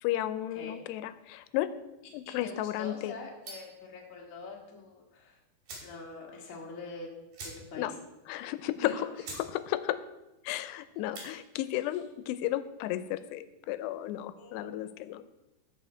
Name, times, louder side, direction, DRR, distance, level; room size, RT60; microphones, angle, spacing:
voice 1, 0.0-1.7 2.1-3.2 7.8-7.9 8.3-9.1 9.4-10.0 10.4-15.2, left 14 dB, 90° left, 13 dB, 2.7 m, -33 dB
voice 2, 2.4-5.4 5.8-7.1 7.7-7.9 8.8-9.1 14.4-14.9, left 3 dB, 65° left, -2 dB, 0.7 m, -44 dB
sound 1, 3.4-3.8 5.1-5.2 5.6-6.0 6.3-6.4 6.7-6.8 7.3-7.9 8.3-8.4 8.9-9.0 9.2-9.5 9.8-10.2 10.9-11.3, right 2 dB, 60° right, 4.1 m, -45 dB
14.5 x 5.1 x 4.4 m, 0.98 s
omnidirectional pair, 4.7 m